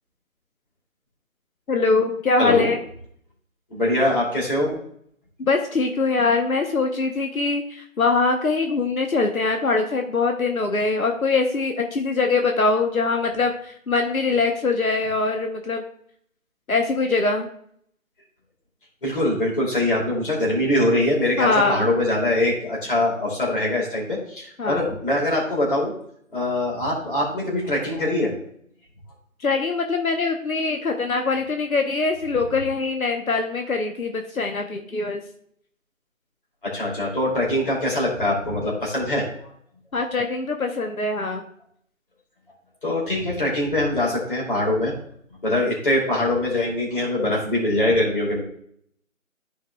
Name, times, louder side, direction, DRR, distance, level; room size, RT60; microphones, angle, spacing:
voice 1, 1.7-2.8 5.4-15.8 16.7-17.5 21.4-21.9 24.6-25.0 29.4-35.2 39.9-41.4, left 3 dB, 80° left, 4 dB, 1.0 m, -23 dB
voice 2, 2.4-2.7 3.7-4.8 19.0-25.9 26.3-28.3 36.6-39.2 42.8-44.9 45.4-48.4, left 1 dB, 40° left, -4 dB, 2.6 m, -23 dB
13.5 x 4.7 x 2.3 m, 0.67 s
figure-of-eight pair, 165°, 42 cm